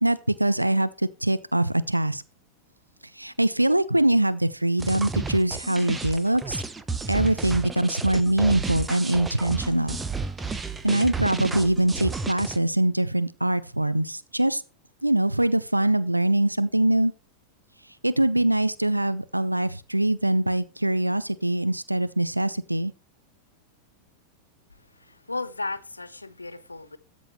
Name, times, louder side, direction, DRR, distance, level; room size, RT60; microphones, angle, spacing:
voice 1, 0.0-2.2 3.1-6.6 7.1-10.0 10.8-14.6 15.0-17.1 18.0-22.9, right 1 dB, 85° right, 0.4 m, -23 dB
sound 1, 4.8-12.6, right 4 dB, 15° right, 0.8 m, -32 dB
voice 2, 25.0-27.0, left 3 dB, 80° left, 0.9 m, -35 dB
13.5 x 6.2 x 3.0 m
figure-of-eight pair, 90°, 0 cm